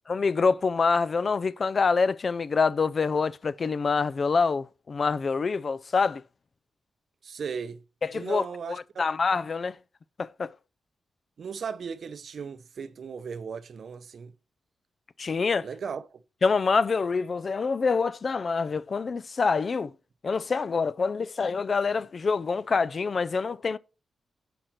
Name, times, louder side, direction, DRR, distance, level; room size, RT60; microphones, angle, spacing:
voice 1, 0.1-6.2 8.0-9.8 10.2-10.5 15.2-15.7 16.4-19.9 20.2-23.8, left 4 dB, 50° left, 0.3 m, -26 dB
voice 2, 7.2-7.8 8.1-9.0 11.4-14.3 15.6-16.2, right 6 dB, 65° right, 0.5 m, -36 dB
5.9 x 5.1 x 4.3 m
cardioid pair, 75°, 0 cm